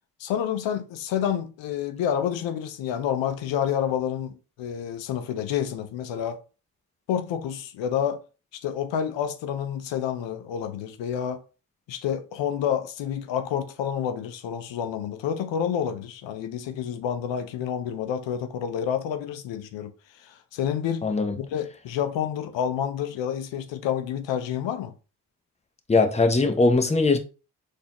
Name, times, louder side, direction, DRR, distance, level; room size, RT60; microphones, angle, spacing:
voice 1, 0.2-6.4 7.1-8.3 8.6-11.4 11.9-19.9 20.2-21.1 21.4-24.9, left 9 dB, 80° left, 0.6 m, -29 dB
voice 2, 21.0-21.3 25.9-27.2, left 3 dB, 15° left, 0.8 m, -20 dB
4.0 x 2.7 x 2.9 m
cardioid pair, 65°, 44 cm